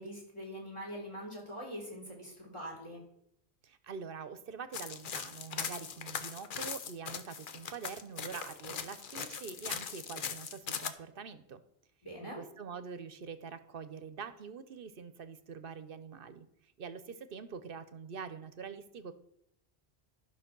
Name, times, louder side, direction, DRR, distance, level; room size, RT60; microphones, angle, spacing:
voice 1, 0.0-3.0 12.0-12.4, equal, 25° left, 1 dB, 3.5 m, -43 dB
voice 2, 3.6-11.6 12.2-19.1, right 6 dB, 60° right, 12 dB, 0.9 m, -45 dB
sound 1, 4.7-10.9, left 7 dB, 55° left, 0.9 m, -40 dB
11.5 x 5.9 x 6.0 m, 0.76 s
omnidirectional pair, 1.1 m